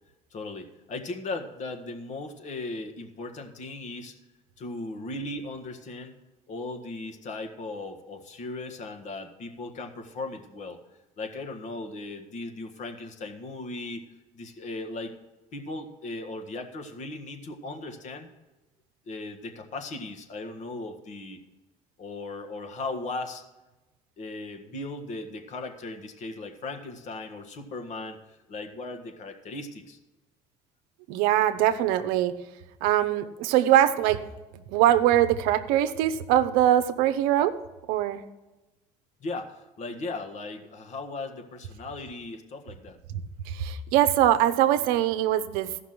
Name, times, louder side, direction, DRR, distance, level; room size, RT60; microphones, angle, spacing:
voice 1, 0.3-4.2 4.6-6.2 6.5-10.8 11.2-14.0 14.3-15.2 15.5-18.3 19.1-21.4 22.0-23.4 24.2-30.0 39.2-43.0, left 2 dB, 55° left, 5 dB, 1.7 m, -37 dB
voice 2, 31.1-32.4 32.8-34.2 34.5-37.5 37.9-38.2 43.1-45.8, right 12 dB, 80° right, 11 dB, 0.7 m, -23 dB
14.0 x 5.9 x 6.0 m, 1.1 s
supercardioid pair, 80°, 15 cm